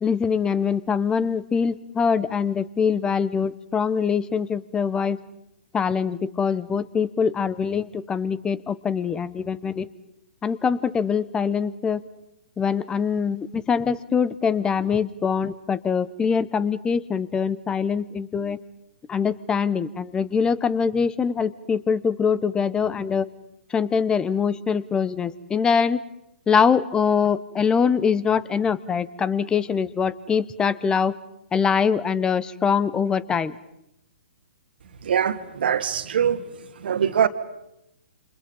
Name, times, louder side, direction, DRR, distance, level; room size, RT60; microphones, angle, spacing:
voice 1, 0.0-5.2 5.7-9.9 10.4-12.0 12.6-18.6 19.1-23.3 23.7-26.0 26.5-31.1 31.5-33.5, left 6 dB, 15° left, 18 dB, 0.9 m, -23 dB
voice 2, 35.0-36.4 36.8-37.3, right 8 dB, 60° right, 9 dB, 1.9 m, -22 dB
29.0 x 28.0 x 5.5 m, 0.84 s
figure-of-eight pair, 125°, 6 cm